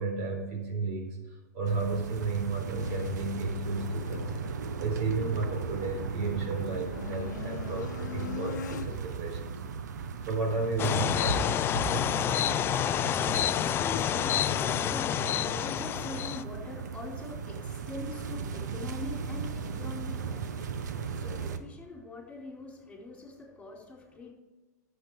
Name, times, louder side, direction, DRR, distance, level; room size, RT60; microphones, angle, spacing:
voice 1, 0.0-9.5 10.3-12.0, right 3 dB, 55° right, 3 dB, 4.2 m, -33 dB
sound 1, 1.6-21.6, right 6 dB, 75° right, 1.0 m, -38 dB
sound 2, 2.8-9.0, left 7 dB, 75° left, 0.8 m, -41 dB
sound 3, 10.8-16.4, left 10 dB, 25° left, 0.4 m, -28 dB
voice 2, 12.8-24.3, left 3 dB, 10° left, -1 dB, 4.4 m, -43 dB
12.0 x 8.0 x 5.0 m, 1.1 s
hypercardioid pair, 115°, 10 cm